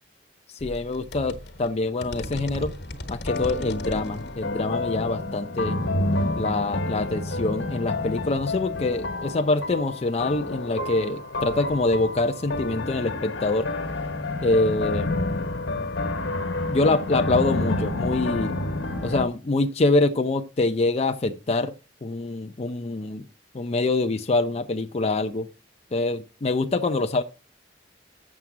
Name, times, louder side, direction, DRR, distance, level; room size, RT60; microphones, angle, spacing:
voice 1, 0.5-2.7 3.1-5.8 6.4-13.7 14.4-15.1 16.7-18.6 19.0-21.7 22.0-23.2 23.5-25.5 25.9-27.2, left 2 dB, 35° left, 0.5 m, -25 dB
sound 1, 0.6-7.0, left 1 dB, 65° left, 1.3 m, -39 dB
sound 2, 2.1-2.6 3.3-19.2, left 2 dB, 85° left, 1.2 m, -29 dB
7.4 x 6.8 x 6.0 m
head